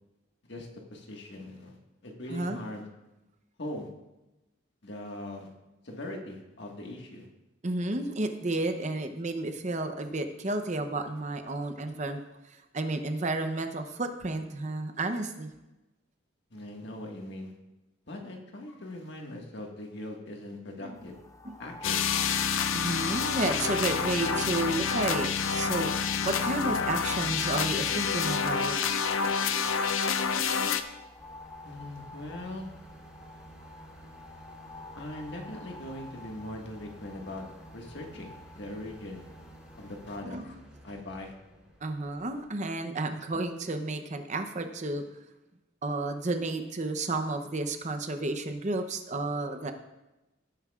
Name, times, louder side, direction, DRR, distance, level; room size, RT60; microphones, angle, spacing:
voice 1, 0.5-1.8 2.0-2.9 3.6-3.9 4.8-5.5 5.8-7.3 16.5-17.5 18.1-21.1 21.6-22.2 22.5-22.7 31.6-32.7 35.0-37.4 37.7-39.2 39.8-40.6 40.8-41.3, left 1 dB, 55° left, 1 dB, 1.7 m, -41 dB
voice 2, 2.3-2.6 7.6-15.5 20.8-21.0 21.4-21.5 22.7-25.9 26.2-28.8 40.2-40.6 41.8-45.0 45.8-49.7, right 2 dB, 35° right, 7 dB, 0.7 m, -32 dB
sound 1, 20.9-40.2, left 2 dB, 15° left, 0.5 m, -48 dB
sound 2, 21.8-30.8, left 6 dB, 80° left, 0.6 m, -28 dB
sound 3, 31.2-42.5, right 1 dB, ahead, 4.4 m, -52 dB
18.0 x 9.4 x 2.4 m, 1.0 s
head